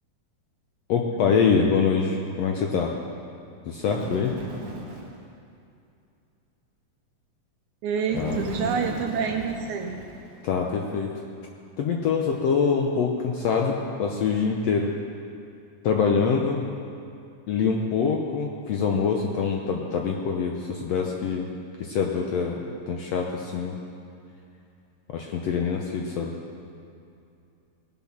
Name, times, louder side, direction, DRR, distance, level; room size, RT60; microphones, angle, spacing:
voice 1, 0.9-3.0 3.6-4.4 8.1-8.4 10.4-11.1 11.8-14.9 15.8-16.6 17.5-21.5 21.8-23.8 25.1-26.4, left 5 dB, 70° left, 1 dB, 1.6 m, -25 dB
Bird, 3.8-5.2 8.1-10.6, right 1 dB, 45° right, 2.6 m, -36 dB
voice 2, 7.8-10.0, right 6 dB, 75° right, 4 dB, 1.9 m, -28 dB
19.5 x 7.3 x 5.9 m, 2.5 s
omnidirectional pair, 3.9 m